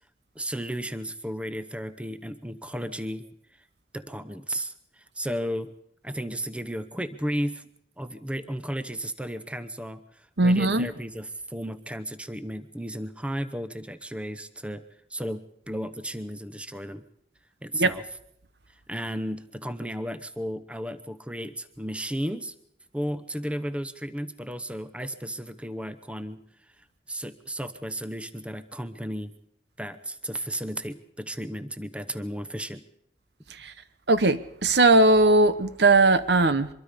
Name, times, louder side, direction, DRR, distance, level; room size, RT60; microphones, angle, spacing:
voice 1, 0.3-3.3 3.9-5.7 6.0-7.7 8.0-14.8 15.1-17.0 17.6-18.0 18.9-22.5 22.9-26.4 27.1-29.3 29.8-32.8, equal, 5° right, 11 dB, 0.9 m, -34 dB
voice 2, 10.4-10.9 17.8-17.9 33.6-33.7 34.1-36.7, right 2 dB, 70° right, 13 dB, 1.0 m, -19 dB
24.5 x 23.0 x 5.2 m, 0.72 s
head